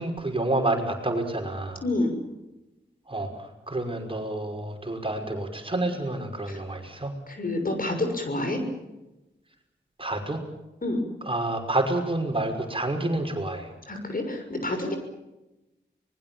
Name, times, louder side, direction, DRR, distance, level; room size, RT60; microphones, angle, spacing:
voice 1, 0.0-1.8 3.1-7.1 10.0-10.4 11.2-13.7, right 2 dB, 30° right, 3 dB, 5.8 m, -29 dB
voice 2, 1.8-2.2 6.5-6.6 7.3-8.6 10.8-11.0 13.9-15.0, left 2 dB, 45° left, 5 dB, 6.5 m, -28 dB
25.0 x 21.0 x 7.3 m, 1.0 s
cardioid pair, 40°, 19 cm